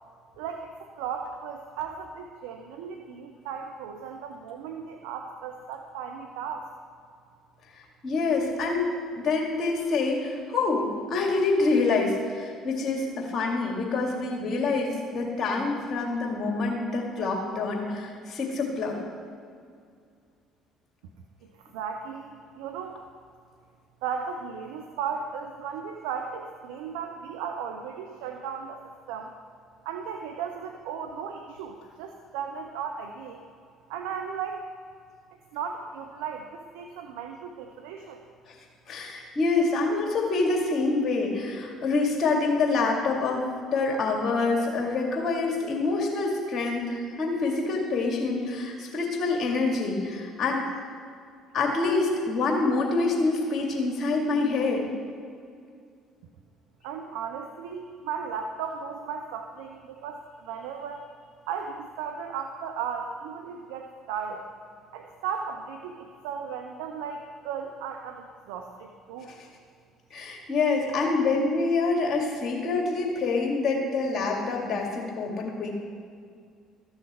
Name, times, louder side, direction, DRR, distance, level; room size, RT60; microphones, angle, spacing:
voice 1, 0.4-6.7 21.4-23.0 24.0-29.3 29.8-33.4 33.9-34.6 35.5-38.2 56.8-61.1 61.5-64.4 64.9-69.3, right 6 dB, 75° right, 4 dB, 0.6 m, -36 dB
voice 2, 8.0-19.0 38.5-38.6 38.9-43.4 43.7-50.6 51.5-54.9 70.1-75.7, left 3 dB, 45° left, 0 dB, 2.5 m, -26 dB
13.5 x 6.5 x 4.6 m, 2.3 s
hypercardioid pair, 55°, 0 cm